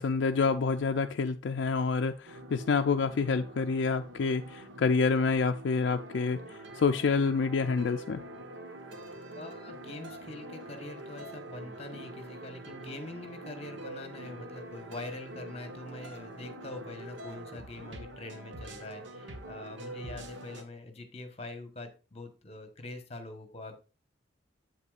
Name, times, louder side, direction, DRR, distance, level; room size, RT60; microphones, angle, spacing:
voice 1, 0.0-6.4 6.8-8.2, left 4 dB, 70° left, 5 dB, 0.4 m, -27 dB
sound 1, 2.3-20.6, right 1 dB, 75° right, 1.2 m, -45 dB
voice 2, 9.3-23.8, left 2 dB, 30° left, 7 dB, 1.1 m, -44 dB
8.2 x 7.8 x 2.4 m, 0.34 s
head